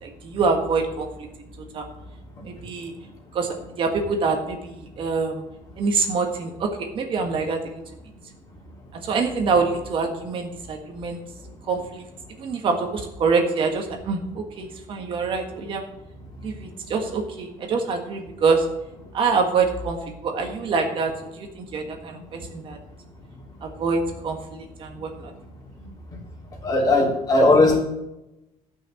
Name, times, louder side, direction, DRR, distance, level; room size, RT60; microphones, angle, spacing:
voice 1, 0.0-1.1 1.7-1.8 2.4-2.9 3.3-5.4 5.8-7.8 8.9-11.2 11.7-12.0 12.4-15.8 16.4-18.6 19.1-20.0 20.2-22.8 23.6-25.3, right 4 dB, 45° right, 3 dB, 1.6 m, -25 dB
voice 2, 26.6-27.8, left 2 dB, 30° left, -2 dB, 3.4 m, -17 dB
13.0 x 6.0 x 7.7 m, 0.92 s
cardioid pair, 155°, 13 cm